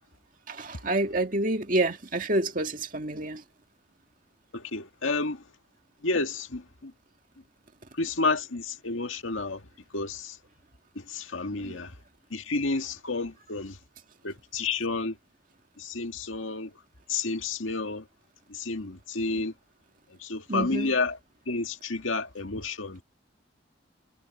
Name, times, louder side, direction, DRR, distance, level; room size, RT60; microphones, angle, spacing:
voice 1, 0.5-3.4 11.6-11.8 20.5-20.9, right 2 dB, 45° right, 2.0 m, -28 dB
voice 2, 4.5-5.4 6.0-6.9 8.0-9.6 9.9-10.4 11.0-11.9 12.3-13.8 14.2-15.2 15.8-16.7 17.1-18.1 18.5-19.5 20.2-21.2 21.5-23.0, left 3 dB, 80° left, 2.0 m, -30 dB
head